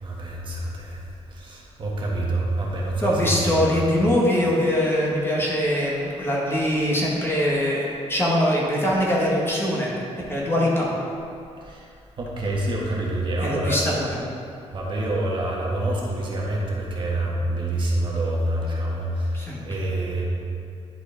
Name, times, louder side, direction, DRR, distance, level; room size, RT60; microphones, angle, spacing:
voice 1, 0.0-1.0 1.3-3.8 11.6-11.9 12.2-13.8 14.7-20.3, right 1 dB, 45° right, -3 dB, 1.3 m, -27 dB
voice 2, 3.0-9.9 10.3-10.9 13.4-14.2 19.3-19.6, equal, 20° left, -4 dB, 1.3 m, -22 dB
10.0 x 4.7 x 3.8 m, 2.4 s
cardioid pair, 135°, 12 cm